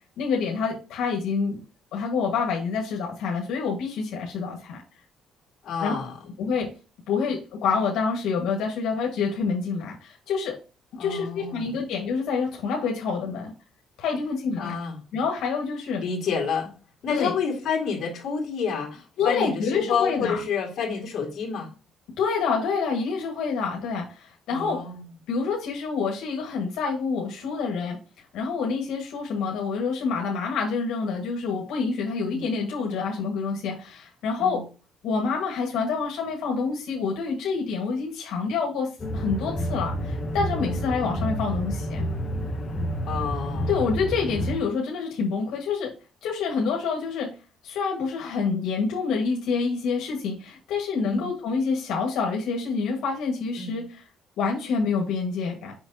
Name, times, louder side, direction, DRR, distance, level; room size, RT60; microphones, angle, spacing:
voice 1, 0.2-1.6 1.9-4.8 5.8-5.9 6.4-6.7 7.1-10.5 11.0-13.5 14.0-14.8 15.1-16.0 17.1-17.3 19.2-20.4 22.2-24.8 25.3-28.0 28.3-34.6 35.0-38.9 39.1-42.0 43.7-45.9 46.2-47.3 47.6-54.0 54.4-55.7, left 5 dB, 80° left, 0 dB, 1.5 m, -27 dB
voice 2, 5.6-6.2 11.0-11.8 14.6-15.0 16.0-16.7 17.0-21.7 24.5-25.1 32.3-32.4 34.4-34.6 40.6-40.8 43.1-43.8 51.0-51.3 53.6-53.8, left 6 dB, 50° left, 0 dB, 2.4 m, -29 dB
sound 1, 39.0-44.6, equal, 25° left, 1.2 m, -29 dB
6.2 x 5.7 x 2.7 m, 0.34 s
cardioid pair, 155°, 0 cm